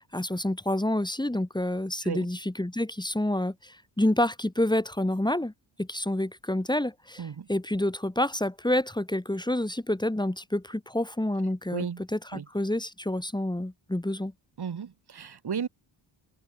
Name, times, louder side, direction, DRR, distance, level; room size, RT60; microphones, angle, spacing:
voice 1, 0.0-5.5 5.8-14.3, left 1 dB, 10° left, 3.7 m, -28 dB
voice 2, 11.7-12.0 12.3-12.5 14.6-15.7, right 7 dB, 55° right, 4.2 m, -34 dB
cardioid pair, 75°, 46 cm